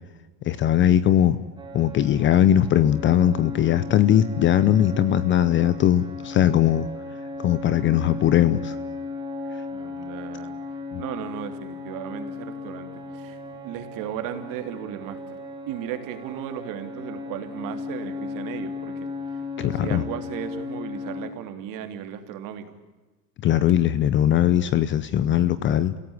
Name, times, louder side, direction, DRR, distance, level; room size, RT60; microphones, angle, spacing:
voice 1, 0.4-1.4 1.7-6.9 7.4-8.7 10.9-11.0 19.6-20.0 23.4-26.0, left 11 dB, 25° left, 15 dB, 0.7 m, -20 dB
sound 1, 1.6-21.3, left 3 dB, 10° right, 3.3 m, -36 dB
voice 2, 9.7-10.6 11.0-13.4 13.6-15.2 15.7-19.1 19.7-22.6, right 9 dB, 40° right, 7 dB, 3.1 m, -35 dB
28.0 x 17.0 x 9.8 m, 1.3 s
supercardioid pair, 145°, 47 cm